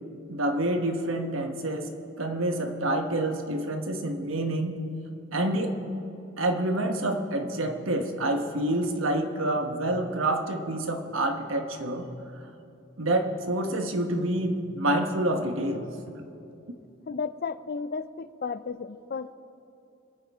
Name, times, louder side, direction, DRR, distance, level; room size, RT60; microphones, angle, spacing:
voice 1, 0.3-1.9 2.2-4.7 5.3-5.7 6.4-12.1 13.0-15.9, right 1 dB, 85° right, 5 dB, 1.2 m, -27 dB
voice 2, 17.1-19.3, left 5 dB, 50° left, 14 dB, 0.5 m, -33 dB
25.5 x 9.3 x 3.6 m, 2.7 s
head